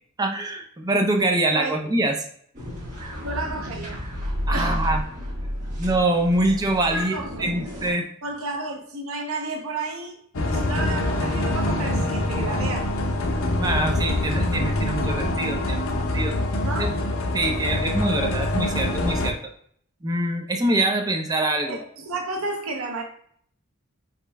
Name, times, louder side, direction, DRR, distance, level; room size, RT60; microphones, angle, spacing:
voice 1, 0.2-2.2 4.5-5.0 5.8-7.1 7.4-8.1 13.6-16.3 16.8-16.9 17.3-19.4 20.0-21.8, right 1 dB, 20° right, 0.5 m, -24 dB
sound 1, 2.5-7.9, equal, 35° right, 1.5 m, -31 dB
voice 2, 3.2-4.0 4.5-4.8 6.9-7.7 8.2-10.2 10.4-12.9 16.6-16.9 21.7-23.0, right 3 dB, 75° right, 0.7 m, -32 dB
sound 2, 10.3-19.3, left 1 dB, 75° left, 0.7 m, -25 dB
5.0 x 4.4 x 2.2 m
head